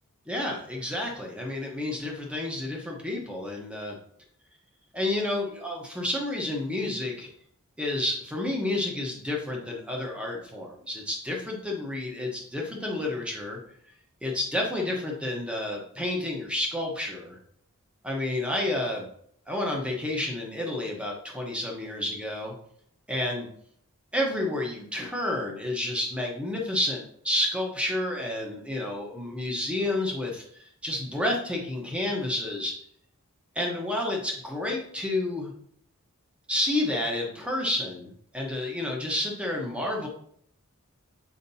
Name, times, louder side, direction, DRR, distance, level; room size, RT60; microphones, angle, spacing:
voice 1, 0.3-3.9 4.9-7.3 7.8-13.6 14.2-17.4 18.0-19.1 19.5-22.5 23.1-23.5 24.1-32.7 33.5-35.5 36.5-40.1, left 1 dB, 5° right, -1 dB, 1.0 m, -30 dB
7.1 x 5.1 x 2.8 m, 0.66 s
head